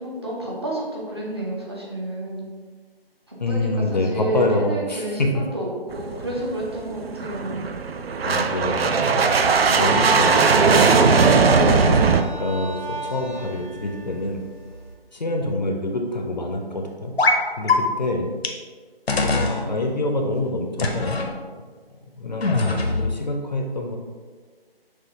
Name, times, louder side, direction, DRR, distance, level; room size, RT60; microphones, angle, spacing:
voice 1, 0.0-2.5 3.3-7.6, right 1 dB, 25° right, -4 dB, 0.6 m, -30 dB
voice 2, 3.4-5.3 8.2-14.4 15.1-17.1 17.6-18.3 19.2-21.1 22.2-24.0, left 2 dB, 45° left, 2 dB, 0.5 m, -26 dB
sound 1, 5.9-12.2, right 5 dB, 75° right, 0.5 m, -19 dB
sound 2, 9.7-14.9, right 3 dB, 50° right, 1.1 m, -31 dB
sound 3, 17.2-17.4 17.7-17.8 18.4-18.5 19.1-19.6 20.8-21.3 22.4-23.1, left 3 dB, 85° left, 0.7 m, -21 dB
6.2 x 2.4 x 2.7 m, 1.5 s
figure-of-eight pair, 155°, 30 cm